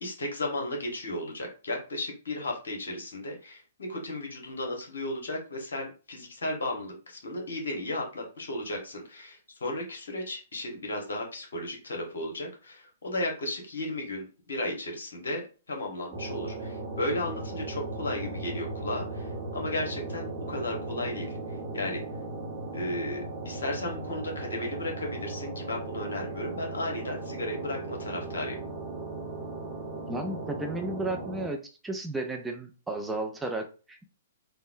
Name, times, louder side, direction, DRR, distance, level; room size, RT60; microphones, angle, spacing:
voice 1, 0.0-21.4 21.7-22.0 22.7-28.6, left 1 dB, 65° left, 1 dB, 1.0 m, -34 dB
sound 1, 16.1-31.5, right 2 dB, 35° right, 0.8 m, -37 dB
voice 2, 30.1-31.6 31.8-34.0, right 2 dB, 10° right, 3 dB, 0.4 m, -33 dB
3.4 x 2.0 x 2.5 m, 0.34 s
figure-of-eight pair, 120°, 0 cm